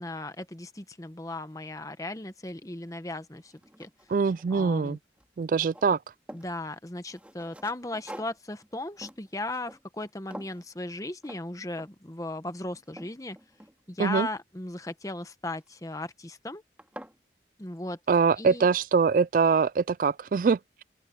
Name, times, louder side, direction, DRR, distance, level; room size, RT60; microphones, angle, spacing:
voice 1, 0.0-3.5 3.8-3.9 4.5-5.0 6.3-13.4 13.9-16.6 17.6-18.0 18.4-18.7, left 2 dB, 20° left, 1.0 m, -36 dB
sound 1, 2.9-3.0 3.4-4.9 5.2-6.5 7.1-10.1 10.3-10.7 11.2-11.4 11.8-12.1 12.5-14.1 15.6-16.0 16.5-16.6 16.8-17.2, equal, 5° right, 2.8 m, -47 dB
voice 2, 4.1-5.0 5.4-6.0 14.0-14.3 18.1-20.8, right 5 dB, 45° right, 0.3 m, -23 dB
open air
head